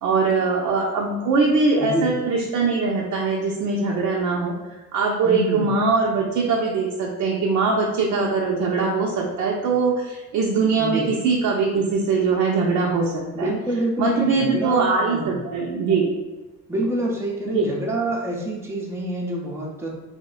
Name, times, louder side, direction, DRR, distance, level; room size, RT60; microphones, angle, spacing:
voice 1, 0.0-4.6 4.9-13.5 14.0-16.1 17.5-17.7, right 4 dB, 55° right, -2 dB, 0.6 m, -22 dB
voice 2, 1.8-2.1 5.2-5.7 10.8-11.1 13.3-15.5 16.7-19.9, right 1 dB, 5° right, -2 dB, 0.7 m, -26 dB
3.2 x 2.1 x 3.7 m, 1.1 s
cardioid pair, 100°, 35 cm